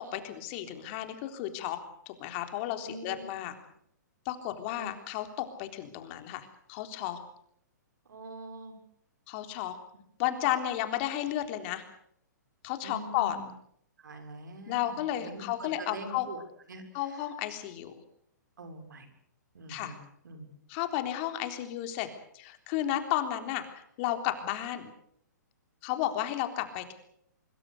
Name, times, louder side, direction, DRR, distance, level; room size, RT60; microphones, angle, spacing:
voice 1, 0.0-1.8 2.1-3.5 4.3-7.2 9.3-9.7 10.2-11.8 12.6-13.4 14.7-16.3 16.9-17.9 19.7-20.0 20.7-22.1 22.3-24.9 25.8-26.9, left 12 dB, 40° left, 7 dB, 3.6 m, -33 dB
voice 2, 2.8-3.2 4.8-4.9 8.1-8.7 12.8-13.5 14.0-16.4 16.7-16.8 18.6-19.1 19.5-20.0 20.2-20.5, right 2 dB, 75° right, 7 dB, 6.6 m, -43 dB
25.0 x 23.0 x 6.6 m, 0.69 s
hypercardioid pair, 135°, 10 cm